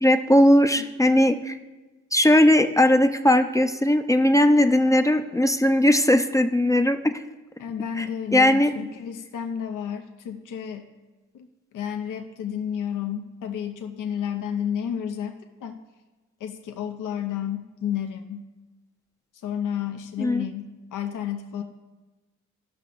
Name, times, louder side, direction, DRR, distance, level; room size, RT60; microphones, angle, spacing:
voice 1, 0.0-1.5 2.1-7.1 8.0-8.1 8.3-8.7 20.2-20.4, left 1 dB, 10° left, 7 dB, 0.5 m, -18 dB
voice 2, 0.8-1.4 7.6-10.9 11.3-15.8 16.4-18.5 19.3-21.6, left 8 dB, 75° left, 5 dB, 0.6 m, -31 dB
13.5 x 5.8 x 2.4 m, 1.2 s
supercardioid pair, 50°, 32 cm